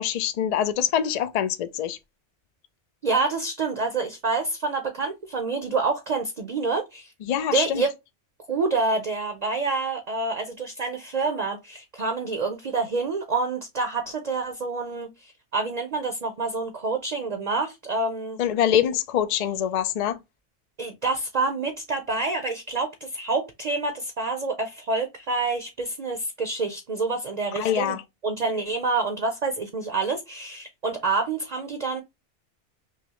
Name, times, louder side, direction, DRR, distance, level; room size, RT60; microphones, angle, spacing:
voice 1, 0.0-2.0 7.2-7.8 18.4-20.2 27.6-28.0, left 10 dB, 75° left, 0.3 m, -24 dB
voice 2, 3.0-7.1 7.5-7.9 8.5-18.4 20.8-32.0, right 3 dB, 45° right, 0.6 m, -27 dB
5.8 x 2.0 x 2.9 m
omnidirectional pair, 1.2 m